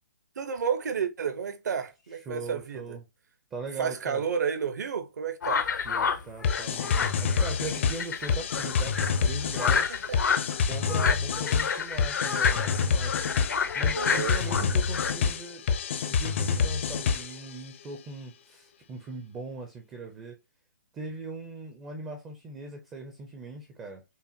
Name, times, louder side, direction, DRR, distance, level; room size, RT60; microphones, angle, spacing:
voice 1, 0.4-3.0 3.8-5.7 9.9-10.4 13.8-14.7, right 6 dB, 65° right, 0.8 m, -31 dB
voice 2, 2.3-3.0 3.5-4.2 5.8-10.0 10.6-13.2 13.7-15.7 16.1-20.4 20.9-24.0, right 3 dB, 10° right, 0.4 m, -40 dB
sound 1, 5.4-15.1, left 6 dB, 75° left, 0.7 m, -30 dB
sound 2, 6.4-17.5, left 6 dB, 40° left, 0.5 m, -27 dB
5.6 x 2.1 x 2.7 m
hypercardioid pair, 165°, 10 cm